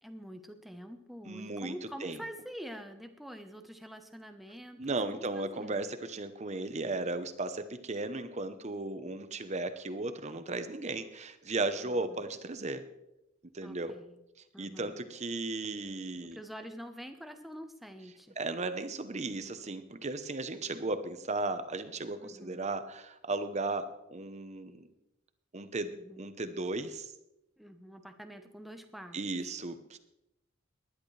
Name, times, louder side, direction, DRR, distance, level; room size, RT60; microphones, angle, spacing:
voice 1, 0.0-5.7 11.8-12.2 13.6-14.2 14.5-15.0 16.2-18.4 22.2-22.7 25.9-26.3 27.6-29.6, equal, ahead, 6 dB, 0.9 m, -46 dB
voice 2, 1.2-1.8 2.0-2.2 4.8-12.8 13.5-13.9 14.6-16.4 18.4-24.9 25.5-27.1 29.1-30.0, right 2 dB, 35° right, 10 dB, 0.9 m, -35 dB
19.0 x 11.0 x 3.3 m, 0.89 s
head